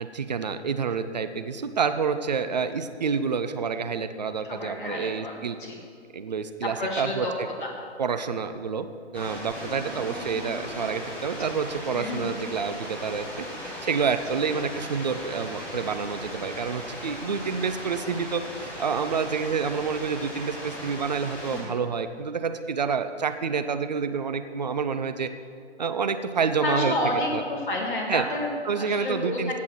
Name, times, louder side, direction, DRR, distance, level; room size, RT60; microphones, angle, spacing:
voice 1, 0.0-5.6 6.1-7.3 8.0-8.9 9.1-25.3 25.8-26.9 27.3-27.4 28.1-28.2 28.6-29.6, right 5 dB, 40° right, 9 dB, 0.6 m, -28 dB
voice 2, 4.4-5.8 6.6-7.3 7.6-7.7 11.9-12.3 14.3-14.4 21.5-21.8 26.6-28.5 28.8-29.6, left 1 dB, 45° left, -1 dB, 1.8 m, -30 dB
sound 1, 9.1-21.6, equal, 5° left, 0.8 m, -38 dB
16.0 x 6.1 x 6.1 m, 2.3 s
figure-of-eight pair, 140°, 34 cm